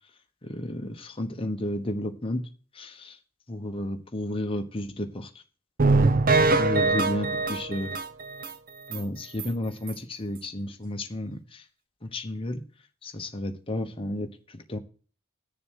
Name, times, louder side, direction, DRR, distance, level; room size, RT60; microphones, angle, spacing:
voice 1, 0.4-2.4 2.7-3.2 3.5-5.3 6.5-7.9 8.9-11.7 12.0-12.6 13.0-14.8, left 1 dB, 25° left, 5 dB, 1.0 m, -32 dB
sound 1, 5.8-8.5 8.9-9.0 9.4-9.5 9.9-10.0, right 3 dB, 45° right, 0.8 m, -23 dB
7.6 x 6.9 x 6.2 m, 0.39 s
head